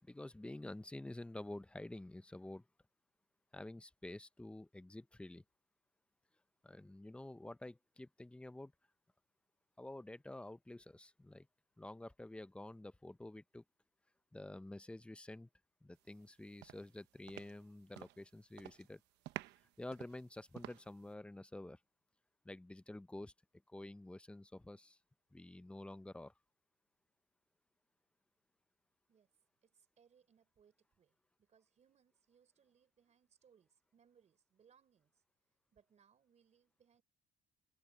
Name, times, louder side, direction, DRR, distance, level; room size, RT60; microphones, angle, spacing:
voice 1, 0.0-2.7 3.5-5.4 6.6-8.7 9.8-11.5 11.8-13.6 14.3-15.5 15.8-19.0 19.8-21.8 22.4-23.3 23.7-25.0 25.3-26.3, left 1 dB, 5° left, 0.6 m, -49 dB
sound 1, 16.1-16.3 16.6-18.3 18.5-18.9 19.2-21.1, right 16 dB, 90° right, 1.0 m, -51 dB
voice 2, 29.6-35.2 35.7-37.0, right 7 dB, 40° right, 4.4 m, -71 dB
cardioid pair, 110°, 17 cm